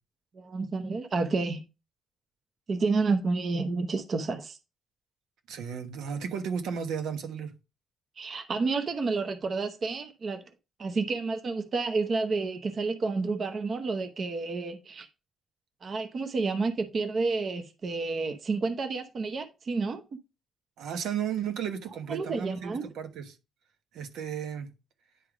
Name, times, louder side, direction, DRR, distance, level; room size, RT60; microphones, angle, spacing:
voice 1, 0.3-1.6 2.7-4.6 8.2-10.4 10.8-15.1 15.8-20.0 22.1-22.9, right 3 dB, 40° right, 0.8 m, -30 dB
voice 2, 5.5-7.5 20.8-23.4 23.9-24.7, right 7 dB, 85° right, 1.2 m, -34 dB
9.8 x 3.5 x 4.9 m
cardioid pair, 135°, 0 cm